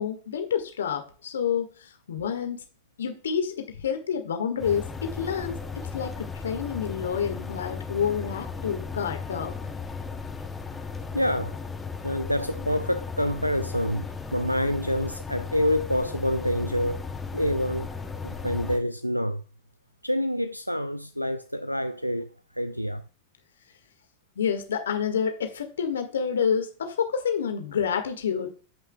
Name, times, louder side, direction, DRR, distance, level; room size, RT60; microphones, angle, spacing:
voice 1, 0.0-2.6 3.0-5.6 5.9-9.5 24.3-28.5, left 7 dB, 65° left, 1.7 m, -28 dB
sound 1, 4.6-18.8, left 5 dB, 10° left, 1.0 m, -36 dB
voice 2, 11.1-11.6 12.0-17.1 17.3-17.9 18.2-19.4 20.0-23.0, equal, 90° left, 0.3 m, -27 dB
14.5 x 5.6 x 2.3 m
figure-of-eight pair, 90°, 0 cm